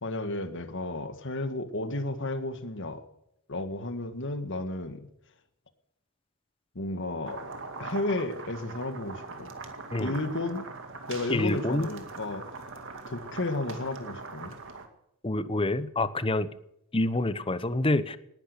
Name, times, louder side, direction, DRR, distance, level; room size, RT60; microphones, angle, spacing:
voice 1, 0.0-3.0 3.5-5.1 6.8-7.4 7.8-9.5 10.0-10.7 11.1-12.5 13.1-14.6, left 2 dB, 60° left, 9 dB, 1.8 m, -33 dB
sound 1, 7.2-14.9, right 4 dB, 60° right, 2.2 m, -41 dB
voice 2, 11.3-11.9 15.2-16.5 16.9-18.2, left 2 dB, 25° left, 14 dB, 0.9 m, -27 dB
19.0 x 11.0 x 6.8 m, 0.80 s
head